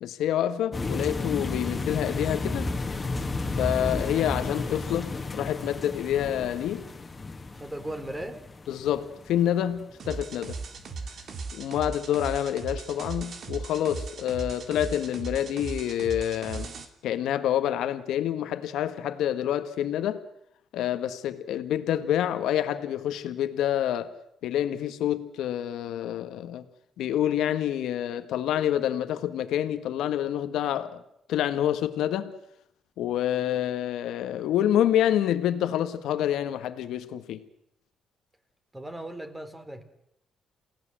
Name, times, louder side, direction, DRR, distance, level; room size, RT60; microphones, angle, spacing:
voice 1, 0.0-2.7 3.6-6.9 8.7-10.6 11.5-16.7 17.0-20.2 20.7-24.1 24.4-26.6 27.0-31.0 31.3-32.3 33.0-37.4, left 11 dB, 85° left, 1.6 m, -27 dB
sound 1, 0.7-9.8 10.3-10.5 10.8-10.9, left 3 dB, 25° left, 2.4 m, -32 dB
voice 2, 7.5-8.4 38.7-39.8, right 1 dB, 15° right, 3.4 m, -37 dB
sound 2, 10.0-16.8, right 4 dB, 55° right, 2.9 m, -38 dB
28.5 x 17.0 x 7.7 m
cardioid pair, 90°, 0 cm